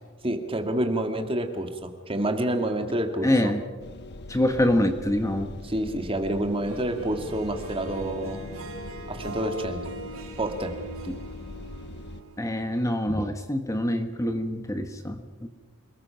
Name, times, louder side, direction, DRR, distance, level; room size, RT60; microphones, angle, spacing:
voice 1, 0.2-3.5 5.6-8.4 9.1-9.8 10.4-10.7, right 1 dB, 25° right, 6 dB, 2.1 m, -28 dB
voice 2, 3.2-3.6 4.3-5.5 12.4-15.5, left 1 dB, 15° left, 7 dB, 1.4 m, -25 dB
sound 1, 3.8-12.2, left 1 dB, 55° left, 1.2 m, -41 dB
Harp, 6.6-12.9, right 2 dB, 90° right, 3.1 m, -42 dB
27.5 x 20.0 x 5.8 m, 1.3 s
head